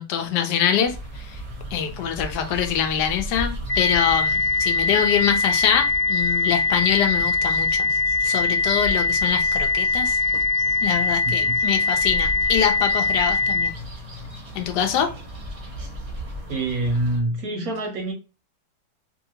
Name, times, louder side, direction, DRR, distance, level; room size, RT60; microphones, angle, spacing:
voice 1, 0.0-1.4 1.7-7.9 8.2-10.2 10.8-13.7 14.5-15.1, left 9 dB, 75° left, 1.1 m, -24 dB
sound 1, 0.8-17.2, equal, 40° right, 0.5 m, -36 dB
sound 2, 3.7-13.7, left 4 dB, 45° left, 1.1 m, -22 dB
voice 2, 11.2-11.6 16.5-18.1, right 2 dB, 65° right, 0.9 m, -26 dB
2.8 x 2.7 x 2.8 m
omnidirectional pair, 1.9 m